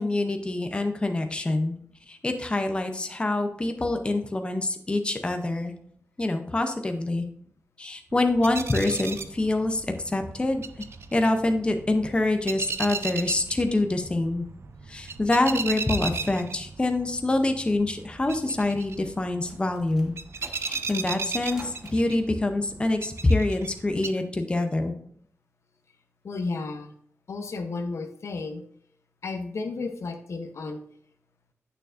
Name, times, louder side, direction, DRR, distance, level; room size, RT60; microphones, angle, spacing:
voice 1, 0.0-1.8 2.1-5.7 6.2-7.3 7.8-10.6 11.1-14.4 14.9-20.1 20.6-24.9, left 2 dB, 20° left, 6 dB, 0.6 m, -26 dB
sound 1, 8.1-24.1, right 5 dB, 60° right, 0.5 m, -37 dB
sound 2, 19.1-22.0, equal, 10° right, 1.2 m, -48 dB
voice 2, 26.2-26.9 27.3-28.6 29.2-30.8, left 3 dB, 70° left, 6 dB, 0.8 m, -33 dB
8.9 x 6.6 x 2.5 m, 0.64 s
wide cardioid pair, 135°, 5 cm